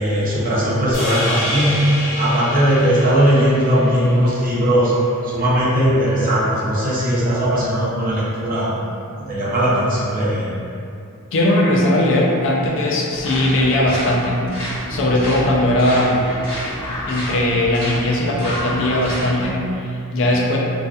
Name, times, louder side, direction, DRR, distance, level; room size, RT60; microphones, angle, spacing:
voice 1, 0.0-1.8 2.2-4.9 5.2-8.7 9.2-10.5, equal, 40° right, -8 dB, 0.6 m, -18 dB
sound 1, 0.9-5.3, left 1 dB, 45° left, 1.0 m, -28 dB
voice 2, 11.3-14.4 14.9-16.2 17.1-20.6, left 1 dB, 60° left, -2 dB, 0.4 m, -18 dB
sound 2, 13.1-19.5, equal, 20° left, 1.1 m, -29 dB
2.5 x 2.4 x 2.2 m, 2.5 s
head